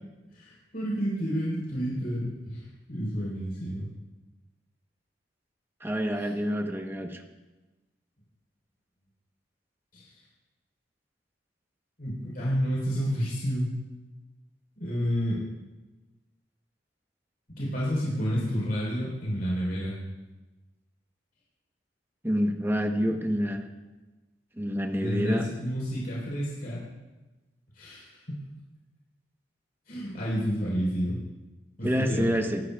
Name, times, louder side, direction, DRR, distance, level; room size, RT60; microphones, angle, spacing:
voice 1, 0.3-3.9 6.2-6.3 9.9-10.0 12.0-13.7 14.8-15.4 17.6-20.0 25.0-26.8 27.8-28.2 29.9-31.2 31.8-32.4, equal, 60° left, -7 dB, 4.0 m, -30 dB
voice 2, 5.8-7.2 22.2-23.6 24.6-25.4 31.8-32.6, equal, 15° right, 4 dB, 1.0 m, -27 dB
22.0 x 12.0 x 2.3 m, 1.1 s
head